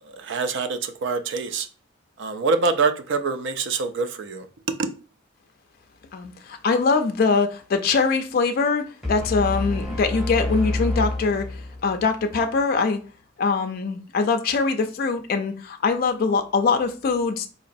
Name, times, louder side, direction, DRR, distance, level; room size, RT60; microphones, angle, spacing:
voice 1, 0.2-1.7 2.2-4.5 4.8-4.9, right 4 dB, 55° right, 0.4 m, -25 dB
voice 2, 6.1-13.0 13.4-17.5, left 4 dB, 45° left, 0.3 m, -23 dB
sound 1, 9.0-12.1, left 2 dB, ahead, 0.9 m, -28 dB
3.9 x 2.8 x 2.5 m
head